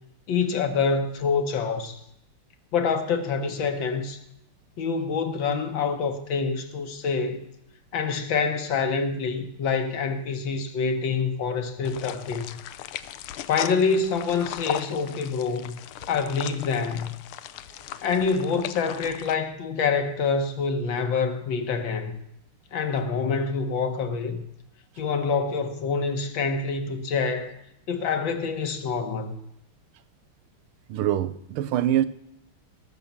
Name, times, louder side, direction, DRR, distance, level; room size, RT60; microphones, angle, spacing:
voice 1, 0.3-2.0 2.7-4.2 4.8-7.4 7.9-12.4 13.5-15.8 16.1-17.1 18.0-22.2 22.7-24.4 25.0-27.5 27.9-29.4, left 5 dB, 65° left, 1.8 m, -26 dB
sound 1, 11.8-19.3, left 12 dB, 85° left, 1.5 m, -37 dB
voice 2, 30.9-32.1, right 11 dB, 85° right, 1.6 m, -24 dB
18.0 x 6.5 x 7.1 m
omnidirectional pair, 2.3 m